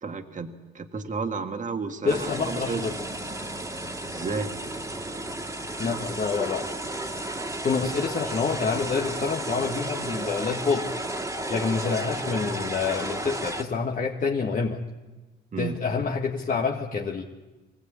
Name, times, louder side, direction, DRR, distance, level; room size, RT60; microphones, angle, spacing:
voice 1, 0.0-2.9 4.1-4.5 15.5-15.8, right 4 dB, 40° right, 5 dB, 1.6 m, -32 dB
voice 2, 2.0-2.9 5.8-6.7 7.6-10.9 11.5-14.8 15.6-17.2, left 5 dB, 40° left, 0 dB, 1.6 m, -27 dB
sound 1, 2.1-13.6, right 1 dB, 15° right, 2.1 m, -33 dB
24.5 x 17.0 x 8.4 m, 1.2 s
cardioid pair, 90°, 20 cm